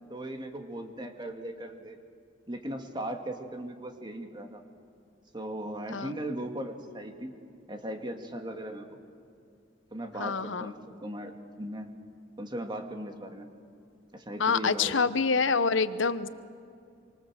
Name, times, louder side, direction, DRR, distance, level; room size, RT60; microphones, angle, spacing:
voice 1, 0.1-2.0 2.5-4.6 5.3-7.3 7.7-9.0 9.9-11.3 11.6-11.9 12.4-13.5 14.1-15.1, right 1 dB, 25° right, 5 dB, 2.1 m, -38 dB
voice 2, 10.2-10.7 14.4-16.3, left 5 dB, 75° left, 13 dB, 0.9 m, -26 dB
26.5 x 24.5 x 7.5 m, 2.3 s
head